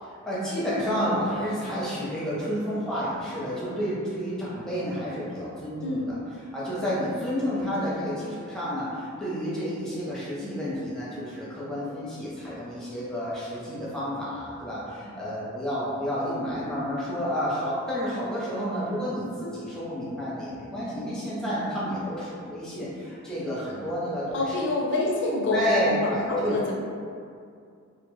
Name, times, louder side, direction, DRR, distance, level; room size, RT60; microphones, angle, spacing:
voice 1, 0.0-24.5 25.5-26.6, equal, 5° left, -9 dB, 0.5 m, -30 dB
voice 2, 24.3-26.7, left 2 dB, 60° left, -3 dB, 0.4 m, -27 dB
2.1 x 2.0 x 2.9 m, 2.3 s
head